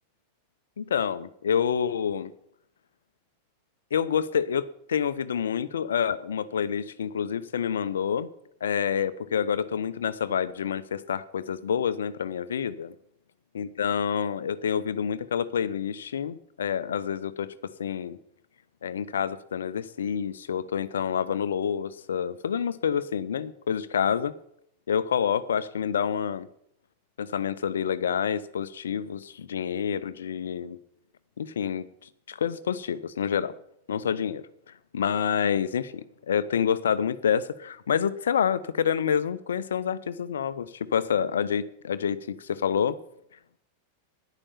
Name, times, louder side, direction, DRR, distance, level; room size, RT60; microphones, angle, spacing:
voice 1, 0.8-2.3 3.9-8.3 8.6-12.9 13.5-17.5 17.8-18.2 18.8-24.3 24.9-26.5 27.2-30.8 31.4-31.9 32.3-33.5 33.9-34.5 34.9-43.0, left 8 dB, 65° left, 15 dB, 0.7 m, -28 dB
10.0 x 9.9 x 7.3 m, 0.72 s
figure-of-eight pair, 90°, 0 cm